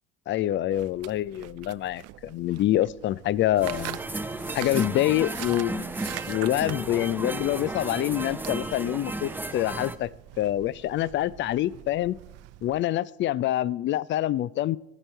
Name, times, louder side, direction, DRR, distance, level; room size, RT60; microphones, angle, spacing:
voice 1, 0.3-4.0 4.5-5.9 6.3-10.1 10.4-12.2 12.6-14.8, left 13 dB, 35° left, 0.4 m, -26 dB
sound 1, 0.7-12.8, right 17 dB, 50° right, 0.4 m, -44 dB
sound 2, 3.6-10.0, right 2 dB, 5° right, 0.6 m, -34 dB
13.5 x 9.0 x 4.5 m
hypercardioid pair, 80°, 33 cm